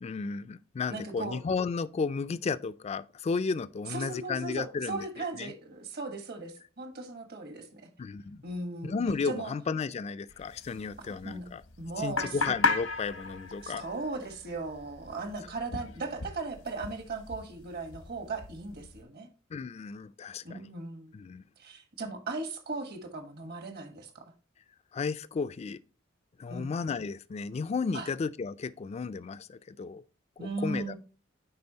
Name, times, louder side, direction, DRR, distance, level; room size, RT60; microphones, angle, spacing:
voice 1, 0.0-5.1 5.3-5.5 8.0-8.4 8.8-11.6 12.0-13.9 19.5-20.7 21.1-21.4 24.9-25.8 26.4-30.0 30.4-30.9, left 4 dB, 30° left, 0.3 m, -33 dB
voice 2, 0.9-1.4 3.9-7.9 8.4-8.9 9.3-9.5 11.0-11.5 11.8-12.5 13.6-19.3 20.4-21.1 21.6-24.2 26.5-26.7 27.9-28.1 30.4-31.0, right 3 dB, 50° right, 1.2 m, -37 dB
sound 1, 10.3-19.0, left 4 dB, 85° left, 0.9 m, -36 dB
9.6 x 4.0 x 2.8 m
head